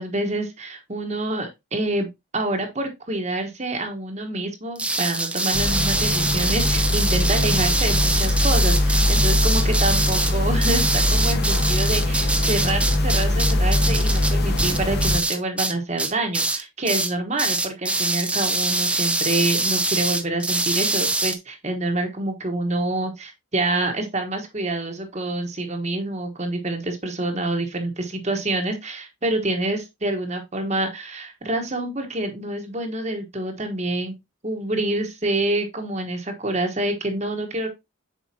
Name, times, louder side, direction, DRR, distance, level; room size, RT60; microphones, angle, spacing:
voice 1, 0.0-2.1 2.3-34.1 34.4-37.7, right 2 dB, 30° right, 1.2 m, -27 dB
sound 1, 4.8-15.7 16.0-16.6 16.9-17.1 17.4-21.4, right 2 dB, 5° right, 0.4 m, -24 dB
sound 2, 5.5-15.2, left 1 dB, 50° left, 1.1 m, -21 dB
7.5 x 4.8 x 2.8 m
head